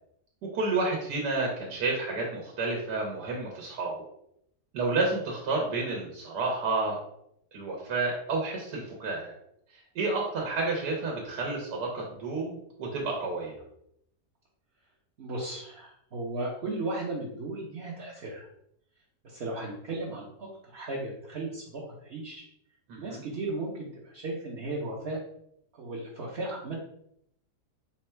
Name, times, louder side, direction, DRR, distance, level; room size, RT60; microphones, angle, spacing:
voice 1, 0.5-3.9 4.7-7.0 7.5-9.3 9.9-13.6 22.9-23.2, right 3 dB, 80° right, -1 dB, 1.4 m, -30 dB
voice 2, 15.2-18.5 19.2-22.4 23.0-25.2 25.7-26.8, right 2 dB, 50° right, -5 dB, 0.8 m, -36 dB
4.2 x 2.2 x 4.3 m, 0.75 s
omnidirectional pair, 1.7 m